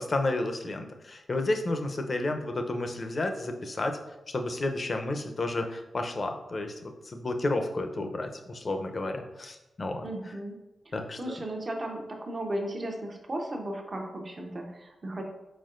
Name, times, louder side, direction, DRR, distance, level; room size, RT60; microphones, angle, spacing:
voice 1, 0.0-4.0 4.3-10.1 10.9-11.4, left 2 dB, 50° left, 5 dB, 0.6 m, -31 dB
voice 2, 10.0-10.6 10.8-15.2, right 1 dB, 45° right, 2 dB, 0.8 m, -35 dB
4.3 x 4.3 x 2.5 m, 0.98 s
cardioid pair, 50°, 0 cm